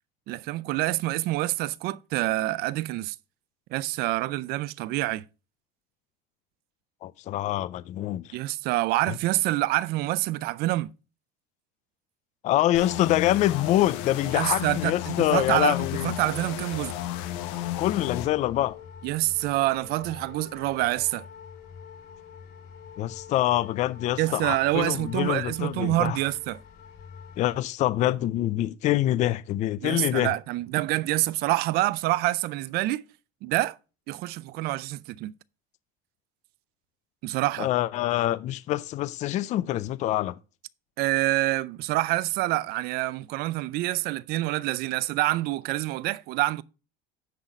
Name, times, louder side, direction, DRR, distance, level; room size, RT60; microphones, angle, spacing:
voice 1, 0.3-3.2 3.7-5.2 8.3-10.9 14.3-16.9 19.0-21.3 24.2-26.6 29.8-33.0 33.4-33.8 34.1-35.3 37.2-37.7 41.0-46.6, right 17 dB, 55° right, 0.4 m, -27 dB
voice 2, 7.0-8.3 9.1-9.2 12.4-16.1 17.8-18.8 23.0-26.2 27.4-30.3 37.6-40.3, left 14 dB, 40° left, 0.4 m, -25 dB
sound 1, 12.7-18.3, left 13 dB, 80° left, 1.1 m, -33 dB
sound 2, 16.5-27.6, left 6 dB, 55° left, 2.4 m, -46 dB
9.8 x 4.1 x 5.0 m
cardioid pair, 150°, 20 cm